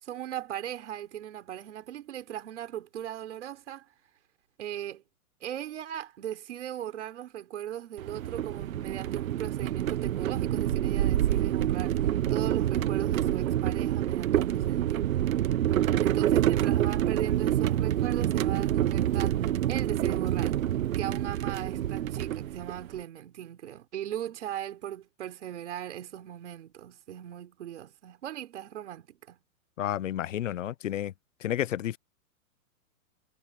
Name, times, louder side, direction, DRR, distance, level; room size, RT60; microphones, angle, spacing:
voice 1, 0.0-3.9 4.6-5.0 5.4-15.1 16.0-19.4 19.7-20.6 21.0-29.4, right 11 dB, 55° right, 4.3 m, -38 dB
sound 1, 8.0-23.0, right 12 dB, 70° right, 0.9 m, -27 dB
voice 2, 29.8-31.1 31.4-32.0, left 11 dB, 60° left, 0.8 m, -31 dB
hypercardioid pair, 175°, 43 cm